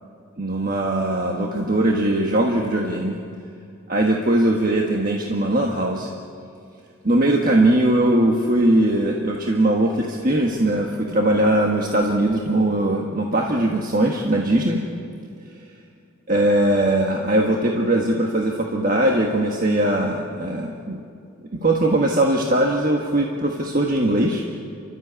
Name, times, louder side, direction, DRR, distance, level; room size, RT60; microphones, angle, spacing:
voice 1, 0.4-3.2 3.9-6.1 7.0-14.8 16.3-21.0 21.5-24.4, right 1 dB, 40° right, 0 dB, 1.5 m, -20 dB
29.5 x 13.0 x 8.3 m, 2.4 s
head